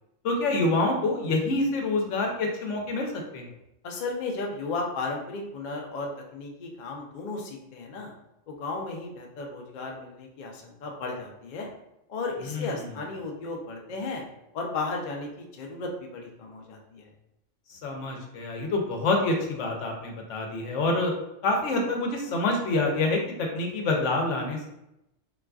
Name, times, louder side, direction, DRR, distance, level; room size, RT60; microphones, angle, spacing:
voice 1, 0.2-3.5 12.4-12.9 17.7-21.1 21.4-24.7, left 2 dB, 85° left, 2 dB, 1.0 m, -27 dB
voice 2, 3.8-8.1 8.5-11.7 12.1-14.2 14.5-17.1, left 3 dB, 55° left, 1 dB, 0.5 m, -34 dB
3.9 x 2.4 x 2.3 m, 0.85 s
omnidirectional pair, 1.2 m